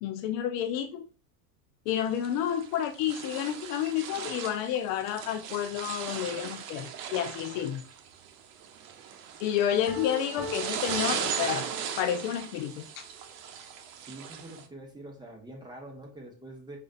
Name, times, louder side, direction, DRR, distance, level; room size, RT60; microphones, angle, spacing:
voice 1, 0.0-1.1 1.9-7.8 9.4-11.7 12.0-13.0, left 10 dB, 55° left, 9 dB, 0.5 m, -30 dB
sound 1, 1.9-14.7, right 8 dB, 70° right, 0.8 m, -38 dB
Piano, 9.9-12.4, left 1 dB, 15° left, 0.8 m, -40 dB
voice 2, 14.1-16.8, right 1 dB, 10° right, 1 dB, 1.0 m, -45 dB
5.0 x 2.7 x 2.5 m, 0.38 s
hypercardioid pair, 100°, 49 cm